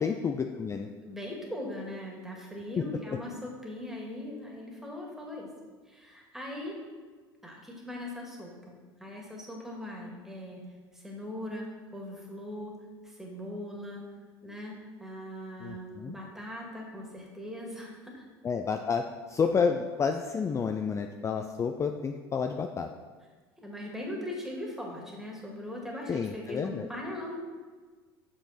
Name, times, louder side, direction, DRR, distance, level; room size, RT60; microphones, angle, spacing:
voice 1, 0.0-0.9 15.6-16.2 18.4-22.9 26.1-26.9, left 5 dB, 25° left, 5 dB, 0.4 m, -30 dB
voice 2, 1.0-5.5 5.9-6.8 7.4-8.7 9.0-10.6 10.9-12.7 13.0-14.0 14.4-18.2 23.6-27.4, left 1 dB, 5° right, -1 dB, 2.0 m, -40 dB
6.9 x 5.8 x 4.2 m, 1.4 s
hypercardioid pair, 70°, 13 cm